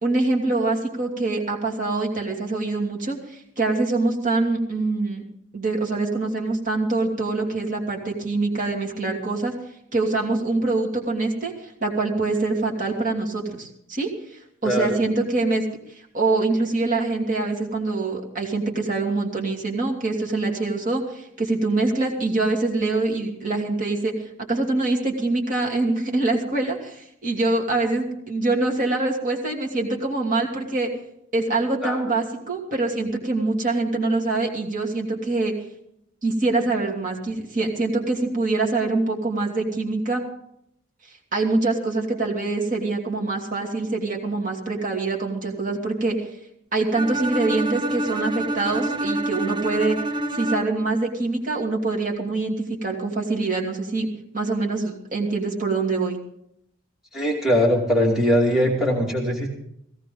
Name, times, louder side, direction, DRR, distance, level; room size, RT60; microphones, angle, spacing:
voice 1, 0.0-5.2 5.5-9.5 9.9-14.1 14.6-15.6 16.1-24.1 24.5-30.9 31.3-35.5 36.2-40.2 41.3-46.3 46.7-50.0 50.3-54.1 54.3-56.2, right 3 dB, 40° right, -1 dB, 2.7 m, -24 dB
voice 2, 14.6-15.0 31.8-32.1 57.1-59.5, equal, ahead, -3 dB, 2.4 m, -21 dB
Bowed string instrument, 46.9-50.9, right 2 dB, 20° right, 0.6 m, -27 dB
17.5 x 16.5 x 3.9 m, 0.74 s
head